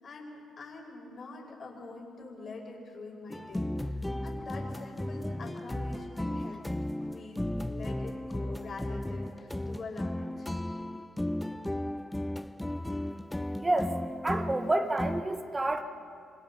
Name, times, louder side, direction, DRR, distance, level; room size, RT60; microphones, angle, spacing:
voice 1, 0.0-6.6 7.0-10.5, left 3 dB, 45° left, -1 dB, 5.2 m, -45 dB
sound 1, 3.3-15.2, left 1 dB, 10° left, 0.6 m, -35 dB
voice 2, 13.6-14.0 14.2-15.8, right 2 dB, 20° right, 7 dB, 1.6 m, -29 dB
27.0 x 26.0 x 4.1 m, 2.4 s
cardioid pair, 90°, 0 cm